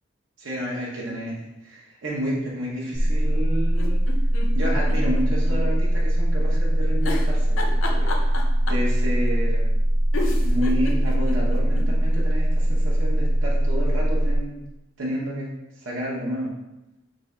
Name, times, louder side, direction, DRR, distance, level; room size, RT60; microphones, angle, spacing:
voice 1, 0.4-1.4 1.6-4.0 4.5-8.3 8.7-9.7 10.4-14.5 15.0-15.5 15.7-16.5, equal, 85° right, -6 dB, 0.8 m, -30 dB
sound 1, 2.9-14.4, right 1 dB, 20° left, 0.4 m, -21 dB
sound 2, 3.7-5.6 5.9-6.0 7.0-8.9 9.8-9.9 10.1-11.9 12.3-12.4 12.6-12.7, left 3 dB, 80° left, 0.5 m, -32 dB
3.6 x 2.8 x 3.2 m, 0.95 s
head